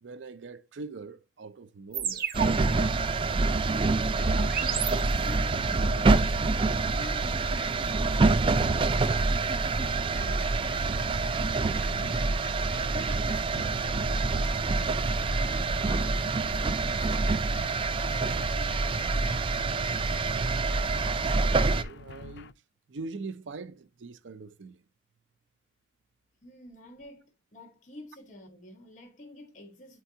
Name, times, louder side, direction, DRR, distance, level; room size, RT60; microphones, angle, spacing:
voice 1, 0.0-2.3 21.5-22.5 22.9-24.8, right 3 dB, 90° right, 0.5 m, -42 dB
sound 1, 1.9-5.6, right 8 dB, 50° right, 0.8 m, -35 dB
sound 2, 2.3-21.8, right 3 dB, 30° right, 0.3 m, -26 dB
voice 2, 3.7-6.3 6.8-9.7 10.1-12.2 12.6-14.6 15.1-17.5 18.0-19.8 26.4-30.0, left 1 dB, 40° left, 1.2 m, -49 dB
sound 3, 4.2-22.5, left 5 dB, 70° left, 0.4 m, -47 dB
8.3 x 4.5 x 2.7 m
head